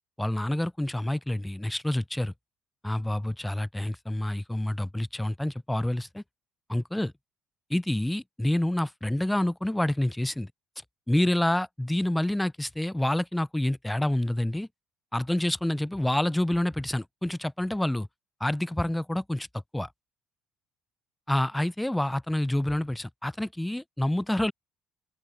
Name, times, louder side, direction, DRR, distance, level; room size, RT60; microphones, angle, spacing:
voice 1, 0.2-2.3 2.8-6.2 6.7-7.1 7.7-10.5 11.1-14.7 15.1-18.1 18.4-19.5 19.7-19.9 21.3-24.5, left 1 dB, 5° left, 1.0 m, -28 dB
open air
hypercardioid pair, 65°, 0 cm